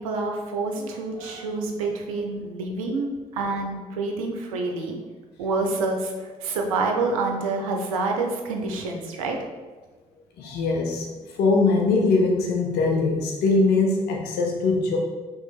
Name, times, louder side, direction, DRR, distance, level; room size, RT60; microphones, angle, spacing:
voice 1, 0.0-5.0 5.4-9.4, right 3 dB, 85° right, 2 dB, 0.6 m, -27 dB
voice 2, 10.4-11.1 11.4-15.0, left 3 dB, 70° left, 0 dB, 0.6 m, -22 dB
3.5 x 3.1 x 4.9 m, 1.3 s
hypercardioid pair, 45°, 17 cm